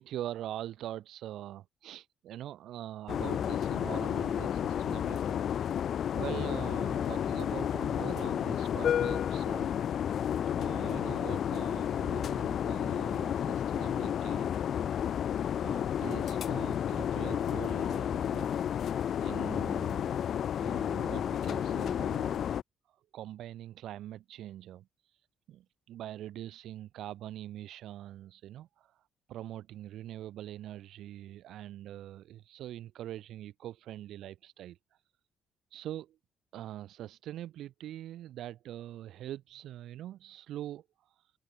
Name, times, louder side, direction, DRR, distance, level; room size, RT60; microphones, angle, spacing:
voice 1, 0.0-5.9 6.1-9.7 10.5-14.5 15.6-18.6 19.2-20.2 20.6-22.5 22.9-25.2 25.5-29.0 29.3-35.0 35.7-36.2 36.5-41.3, right 12 dB, 80° right, 4.1 m, -43 dB
sound 1, 3.1-22.6, left 9 dB, 65° left, 3.3 m, -31 dB
cardioid pair, 90°, 0 cm